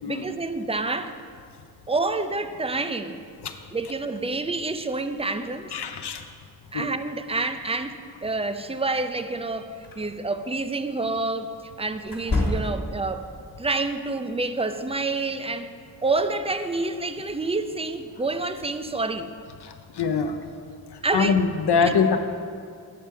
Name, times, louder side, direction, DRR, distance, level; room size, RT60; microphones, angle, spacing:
voice 1, 0.1-1.2 1.9-3.2 3.7-5.7 6.7-9.7 10.0-13.3 13.6-15.7 16.0-19.3 21.0-21.3 21.8-21.9, right 3 dB, 15° right, 9 dB, 0.4 m, -28 dB
voice 2, 5.7-6.2 6.7-6.9 19.6-20.4 21.1-22.2, left 5 dB, 85° left, 6 dB, 0.6 m, -23 dB
sound 1, 9.8-10.0 12.0-13.1, left 2 dB, 60° left, 1.4 m, -26 dB
7.7 x 4.6 x 6.6 m, 2.2 s
wide cardioid pair, 50°, 39 cm